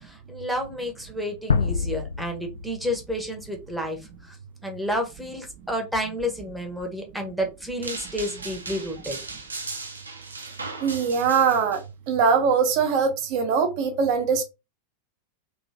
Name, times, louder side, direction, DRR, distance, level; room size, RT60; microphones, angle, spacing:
voice 1, 0.1-4.0 4.6-9.2, equal, ahead, 1.1 m, -30 dB
sound 1, 1.5-4.4, left 5 dB, 70° left, 0.3 m, -28 dB
sound 2, 7.8-11.8, right 3 dB, 75° right, 0.8 m, -37 dB
voice 2, 10.8-11.8 12.1-14.4, right 6 dB, 45° right, 1.1 m, -22 dB
3.1 x 3.0 x 2.8 m
figure-of-eight pair, 90°, 0 cm